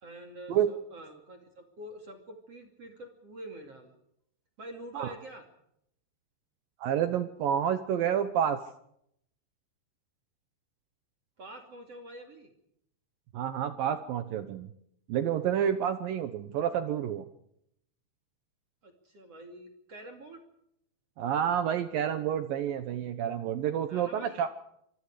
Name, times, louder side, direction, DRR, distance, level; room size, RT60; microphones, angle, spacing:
voice 1, 0.0-3.9 4.6-5.5 11.4-12.5 18.8-20.4 23.9-24.4, right 1 dB, 40° right, 4 dB, 3.0 m, -46 dB
voice 2, 6.8-8.6 13.3-14.7 15.1-17.3 21.2-24.5, right 9 dB, 80° right, 10 dB, 2.0 m, -29 dB
26.0 x 24.5 x 5.0 m, 0.75 s
omnidirectional pair, 5.5 m